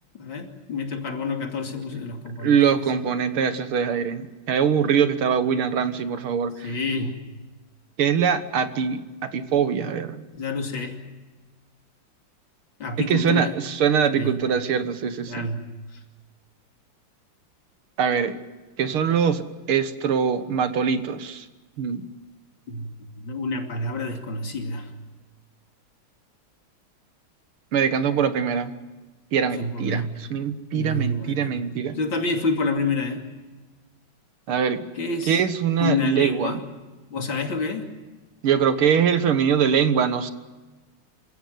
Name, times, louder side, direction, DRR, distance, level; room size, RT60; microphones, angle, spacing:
voice 1, 0.2-2.6 6.6-7.1 10.4-11.0 12.8-13.5 14.1-14.4 15.3-15.6 22.7-22.9 23.2-24.9 29.4-30.1 30.7-31.5 32.0-33.2 35.0-35.4 35.8-36.6 37.1-37.9, left 3 dB, 65° left, 3 dB, 3.4 m, -28 dB
voice 2, 2.4-6.8 8.0-9.0 9.3-10.3 13.1-15.5 18.0-18.4 18.8-21.5 21.8-22.1 27.7-28.7 29.3-32.0 34.5-34.8 35.3-36.6 38.4-40.3, right 7 dB, 80° right, 11 dB, 2.2 m, -23 dB
27.0 x 16.0 x 9.3 m, 1.2 s
omnidirectional pair, 2.3 m